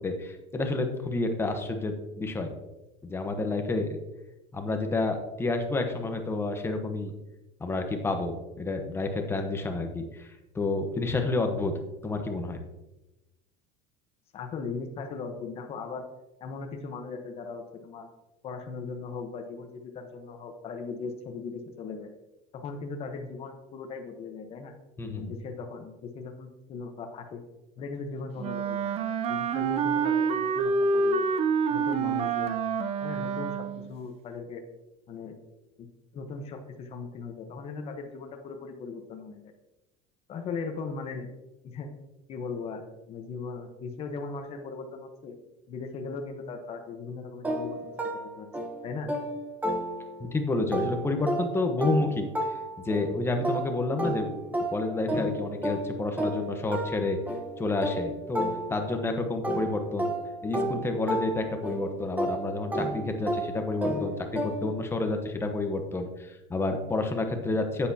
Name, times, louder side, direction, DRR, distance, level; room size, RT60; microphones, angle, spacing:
voice 1, 0.0-2.5 3.0-4.0 4.5-7.1 7.6-11.7 12.0-12.6 25.0-25.2 50.2-52.3 52.8-54.3 54.6-57.2 57.6-60.1 60.4-67.9, left 2 dB, 15° left, 5 dB, 1.1 m, -29 dB
voice 2, 14.3-16.0 16.4-18.1 18.4-22.1 22.5-24.7 25.1-27.4 27.8-28.9 29.3-31.3 31.7-32.6 33.0-34.6 35.1-35.4 35.8-35.9 36.1-39.4 40.3-41.3 41.6-41.9 42.3-45.4 45.7-48.5 48.8-49.2, left 4 dB, 35° left, 4 dB, 1.1 m, -38 dB
Wind instrument woodwind instrument, 28.4-33.9, right 5 dB, 35° right, 0.5 m, -27 dB
sound 1, 47.4-50.3 50.7-59.1 59.4-64.9, right 1 dB, 10° right, 1.1 m, -32 dB
9.9 x 8.6 x 2.8 m, 1.0 s
cardioid pair, 140°, 17 cm